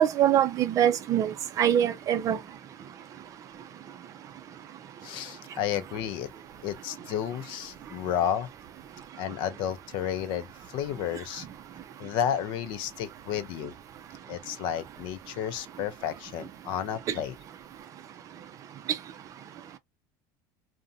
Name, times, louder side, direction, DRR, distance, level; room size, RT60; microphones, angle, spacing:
voice 1, 0.0-2.4, right 10 dB, 35° right, 0.4 m, -23 dB
voice 2, 5.0-6.3 6.6-8.5 9.2-10.5 10.7-11.5 12.0-13.7 14.3-17.3, left 9 dB, 55° left, 0.5 m, -32 dB
2.6 x 2.2 x 2.4 m
supercardioid pair, 125°, 9 cm